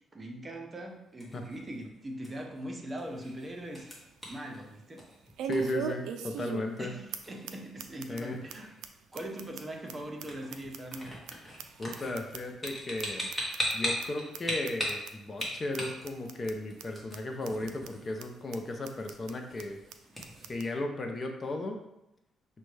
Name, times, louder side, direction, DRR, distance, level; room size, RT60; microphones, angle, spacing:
voice 1, 0.1-3.9 4.3-5.1 6.8-8.7 9.1-11.2, right 1 dB, 25° right, 2 dB, 0.7 m, -41 dB
sound 1, 0.9-20.5, equal, 5° left, 1.3 m, -41 dB
sound 2, 3.0-3.1 3.6-3.7 5.4-6.8 7.1-7.2 7.5-7.6 7.8-8.2 8.5-8.6 8.8-8.9 9.2-11.3 11.6-12.7 13.0-13.1 13.3-13.7 14.0-14.1 14.3-14.4 14.7-15.1 15.4-15.5 15.7-15.8 16.1-16.5 16.8-16.9 17.1-17.2 17.4-17.9 18.2-18.3 18.5-18.6 18.8-19.3 19.6-19.7 19.9-20.0 20.2-20.7, right 9 dB, 85° right, 0.3 m, -38 dB
voice 2, 5.4-6.9 8.1-8.4 11.8-13.3 13.7-19.8 20.5-21.8, left 2 dB, 35° left, 3 dB, 0.5 m, -35 dB
6.0 x 2.2 x 3.2 m, 0.87 s
cardioid pair, 90°, 0 cm